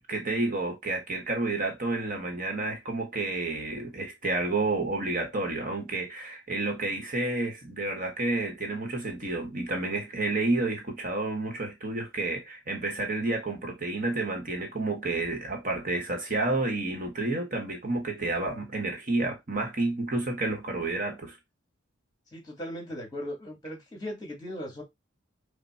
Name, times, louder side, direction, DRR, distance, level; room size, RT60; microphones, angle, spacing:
voice 1, 0.0-21.4, right 2 dB, 40° right, 1.1 m, -30 dB
voice 2, 22.3-24.8, equal, 20° left, 2.0 m, -38 dB
5.8 x 2.1 x 4.1 m
head